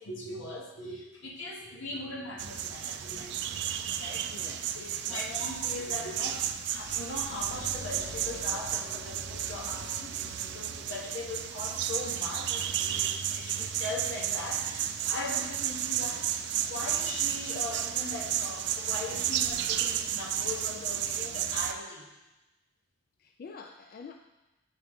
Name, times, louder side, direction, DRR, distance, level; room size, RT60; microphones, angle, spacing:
voice 1, 0.0-3.3 4.0-4.3 4.7-16.3 16.7-22.1, left 2 dB, 80° left, -1 dB, 1.2 m, -40 dB
sound 1, 2.4-21.7, right 10 dB, 60° right, 0.3 m, -32 dB
voice 2, 4.3-4.7 5.1-5.2 23.2-24.2, left 5 dB, 50° left, 4 dB, 0.3 m, -46 dB
sound 2, 7.0-11.6, left 2 dB, 25° left, 1.7 m, -48 dB
9.2 x 3.6 x 3.5 m, 1.0 s
head